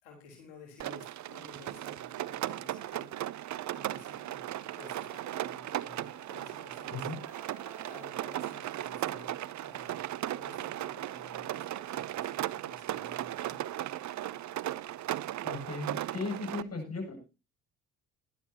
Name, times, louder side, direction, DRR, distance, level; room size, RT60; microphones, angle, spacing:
voice 1, 0.0-7.3 7.8-10.0 10.3-13.6, left 4 dB, 80° left, 0 dB, 4.3 m, -54 dB
Rain, 0.8-16.6, right 13 dB, 50° right, 0.7 m, -37 dB
sound 1, 4.6-10.1, equal, 5° right, 3.3 m, -57 dB
voice 2, 15.4-17.2, left 3 dB, 40° left, 4 dB, 7.8 m, -37 dB
18.5 x 12.0 x 2.9 m, 0.30 s
hypercardioid pair, 60°, 38 cm